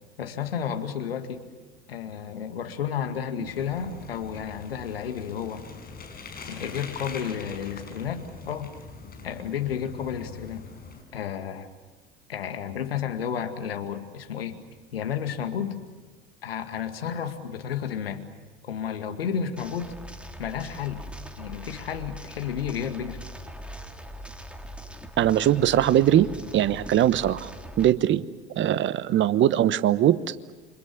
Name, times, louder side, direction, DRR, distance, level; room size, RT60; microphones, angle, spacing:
voice 1, 0.2-1.4 1.9-5.7 6.5-8.7 9.2-10.7 11.1-11.7 12.3-14.6 14.9-15.8 16.4-18.2 18.6-19.9 20.4-21.1 21.4-23.2, left 8 dB, 80° left, 7 dB, 2.1 m, -32 dB
Bicycle, 3.5-11.0, left 5 dB, 30° left, 6.5 m, -43 dB
sound 1, 19.6-27.9, equal, 5° right, 2.8 m, -41 dB
voice 2, 25.2-27.5 27.8-28.2 28.6-30.6, right 11 dB, 40° right, 16 dB, 1.1 m, -21 dB
28.5 x 25.5 x 7.2 m, 1.3 s
hypercardioid pair, 70°, 29 cm